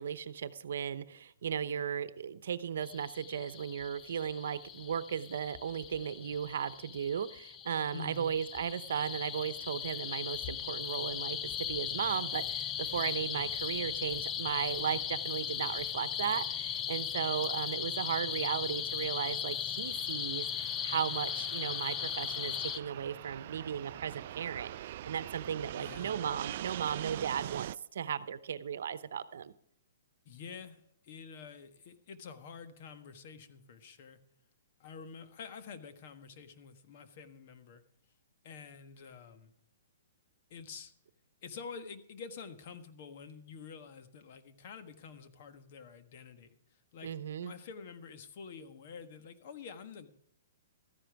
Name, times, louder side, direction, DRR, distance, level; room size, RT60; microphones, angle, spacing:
voice 1, 0.0-29.5 47.0-47.5, right 8 dB, 70° right, 14 dB, 0.9 m, -36 dB
sound 1, 2.8-22.8, left 9 dB, 20° left, 0.5 m, -38 dB
voice 2, 7.9-8.3 25.8-26.1 30.2-34.2 34.8-37.8 38.4-39.5 40.5-40.9 41.4-50.1, left 5 dB, 50° left, 9 dB, 1.5 m, -48 dB
Fixed-wing aircraft airplane, 15.5-27.8, right 13 dB, 50° right, 0.4 m, -45 dB
14.0 x 10.0 x 4.8 m, 0.70 s
hypercardioid pair, 150°, 0 cm